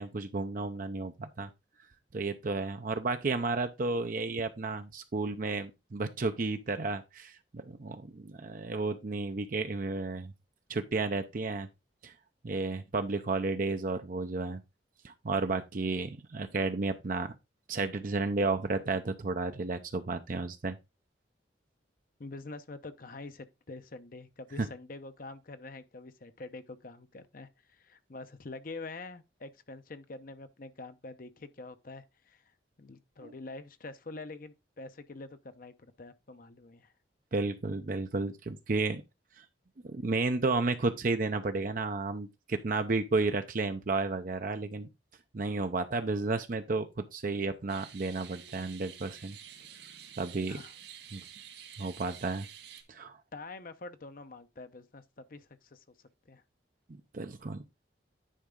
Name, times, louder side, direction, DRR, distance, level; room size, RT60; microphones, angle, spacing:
voice 1, 0.0-1.5 2.1-10.3 10.7-11.7 12.0-12.1 12.4-14.6 15.0-17.3 17.7-20.8 24.6-24.7 33.2-33.3 37.3-39.0 39.4-39.5 39.8-44.9 45.3-49.4 50.2-50.6 51.1-51.2 51.8-52.5 52.9-53.2 57.1-57.6, right 3 dB, 45° right, 0.6 m, -32 dB
voice 2, 22.2-32.4 32.8-36.9 50.5-50.7 53.3-55.8 56.3-56.4, left 3 dB, 50° left, 0.7 m, -46 dB
sound 1, 47.7-52.8, right 9 dB, 70° right, 2.2 m, -49 dB
10.0 x 4.7 x 3.7 m
head